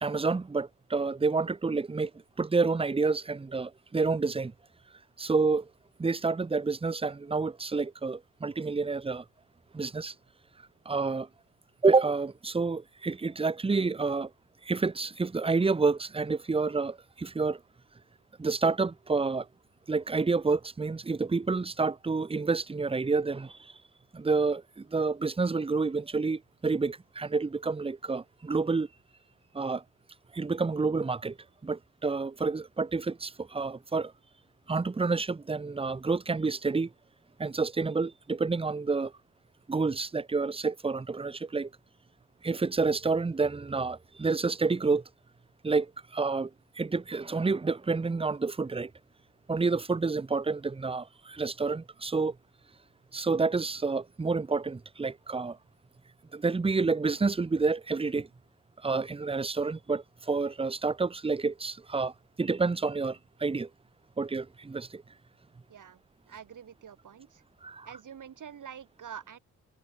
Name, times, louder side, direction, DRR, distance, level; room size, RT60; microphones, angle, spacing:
voice 1, 0.0-2.1 2.4-4.5 5.2-5.7 6.0-9.2 9.7-10.1 10.9-11.3 11.8-14.3 14.6-17.6 18.4-19.5 19.9-23.7 24.1-28.9 29.5-29.8 30.3-31.4 31.6-34.1 34.7-36.9 37.4-39.1 39.7-41.7 42.4-45.0 45.6-46.5 46.8-48.9 49.5-52.4 53.1-55.6 56.3-58.3 58.8-62.1 62.4-63.7 64.2-65.0 67.6-67.9, right 4 dB, 15° right, 0.7 m, -29 dB
voice 2, 65.7-67.4 67.8-69.4, right 8 dB, 65° right, 7.9 m, -46 dB
cardioid pair, 65°, 33 cm